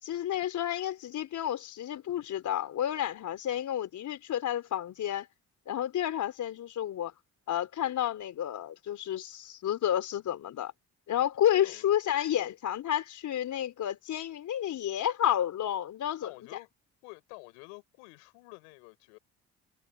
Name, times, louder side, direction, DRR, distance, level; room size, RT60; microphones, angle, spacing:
voice 1, 0.0-5.3 5.7-7.1 7.5-10.7 11.1-16.3, left 11 dB, 60° left, 4.4 m, -30 dB
voice 2, 16.2-16.7 17.0-19.2, left 35 dB, 85° left, 7.2 m, -49 dB
hypercardioid pair, 55°, 33 cm